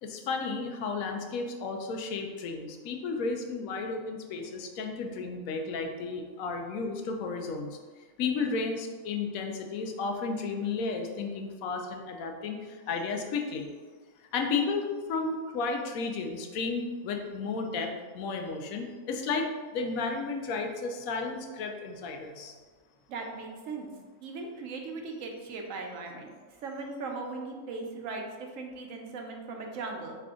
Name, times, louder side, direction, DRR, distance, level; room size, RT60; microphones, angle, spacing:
voice 1, 0.0-7.8 8.2-13.7 14.3-19.5 19.7-22.5, left 4 dB, 75° left, 3 dB, 1.0 m, -33 dB
voice 2, 23.1-23.9 24.2-26.3 26.6-30.2, right 3 dB, 70° right, 2 dB, 1.0 m, -38 dB
3.7 x 3.3 x 3.6 m, 1.4 s
omnidirectional pair, 1.5 m